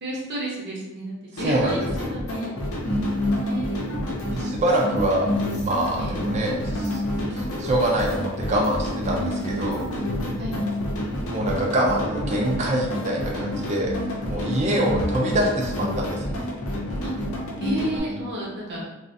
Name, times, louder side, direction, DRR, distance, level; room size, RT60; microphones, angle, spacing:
voice 1, 0.0-2.7 3.2-3.9 6.0-6.2 9.2-9.6 10.4-10.5 14.6-14.8 17.0-17.1 17.6-18.8, right 1 dB, 50° right, -4 dB, 0.7 m, -32 dB
sound 1, 1.4-18.0, equal, 85° left, 0.6 m, -31 dB
voice 2, 1.4-2.1 4.3-5.3 5.6-7.0 7.3-9.8 11.3-14.0 14.3-16.4, right 1 dB, 30° right, -1 dB, 0.3 m, -25 dB
sound 2, 2.8-18.3, left 1 dB, 35° left, 0.4 m, -32 dB
2.4 x 2.1 x 2.6 m, 0.98 s
head